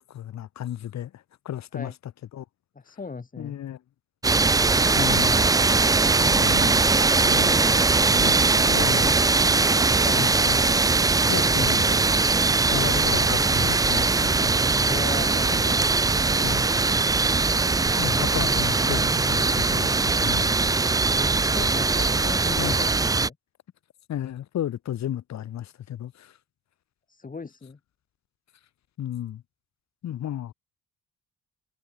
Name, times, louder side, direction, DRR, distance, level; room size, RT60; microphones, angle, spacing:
voice 1, 0.0-1.9 2.3-2.4 3.4-3.8 4.9-5.4 6.2-6.9 7.2-9.2 10.1-10.6 11.3-12.0 12.7-14.5 16.4-16.7 18.0-20.6 22.5-22.7 24.1-26.3 29.0-29.4 30.0-30.5, left 11 dB, 65° left, 1.6 m, -33 dB
voice 2, 2.8-3.6 10.0-10.3 12.7-12.9 14.8-15.9 21.2-23.3 27.1-27.8, left 4 dB, 25° left, 2.7 m, -37 dB
sound 1, 4.2-23.3, right 3 dB, 10° right, 0.4 m, -21 dB
cardioid pair, 90°, 30 cm